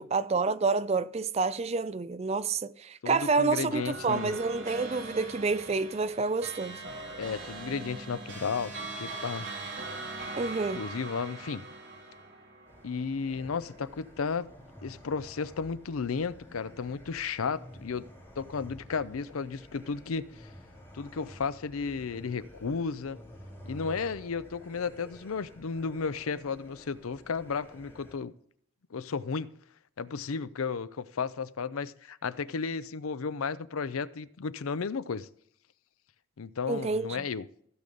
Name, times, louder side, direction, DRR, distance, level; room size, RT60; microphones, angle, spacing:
voice 1, 0.0-6.8 10.4-10.8 36.7-37.1, right 4 dB, 30° right, 0.3 m, -28 dB
voice 2, 3.0-4.4 7.2-9.5 10.7-11.6 12.8-14.5 14.8-18.1 18.4-20.2 20.9-23.2 23.7-28.3 28.9-29.5 30.0-35.3 36.4-37.5, left 5 dB, 90° left, 0.5 m, -33 dB
sound 1, 3.7-13.3, right 2 dB, 60° right, 2.8 m, -41 dB
sound 2, 12.6-28.2, equal, 10° left, 4.2 m, -51 dB
15.5 x 6.8 x 3.9 m
head